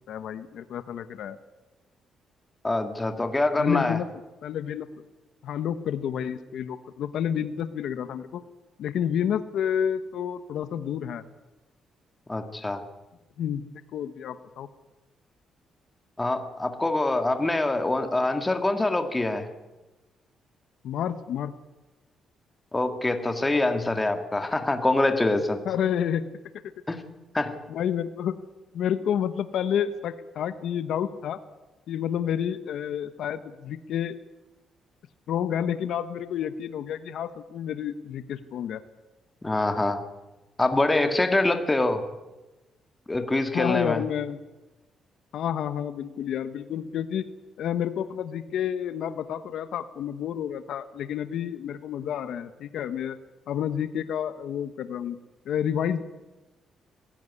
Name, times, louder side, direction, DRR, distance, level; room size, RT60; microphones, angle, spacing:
voice 1, 0.1-1.4 3.6-4.1 4.4-4.9 5.4-8.4 8.8-11.2 13.4-14.7 20.8-21.5 25.6-26.3 27.7-28.4 28.7-31.4 31.9-34.2 35.3-38.8 43.5-44.4 45.3-47.3 47.6-53.2 53.5-55.2 55.4-56.0, left 9 dB, 75° left, 11 dB, 1.1 m, -29 dB
voice 2, 2.6-4.0 12.3-12.8 16.2-19.5 22.7-25.6 26.9-27.0 27.3-27.6 39.4-40.0 40.6-42.0 43.1-44.0, left 2 dB, 15° left, 6 dB, 2.1 m, -25 dB
20.5 x 15.5 x 9.7 m, 1.1 s
cardioid pair, 135°, 0 cm